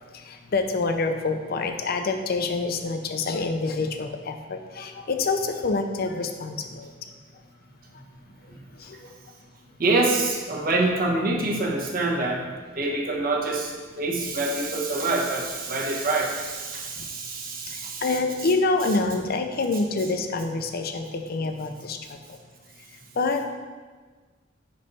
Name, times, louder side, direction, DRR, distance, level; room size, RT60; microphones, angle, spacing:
voice 1, 0.5-6.9 8.9-9.0 17.7-17.8 18.0-22.0 23.2-23.4, left 3 dB, 55° left, 6 dB, 0.5 m, -26 dB
voice 2, 9.8-18.1, right 2 dB, 50° right, -1 dB, 1.1 m, -26 dB
5.3 x 4.0 x 5.4 m, 1.4 s
head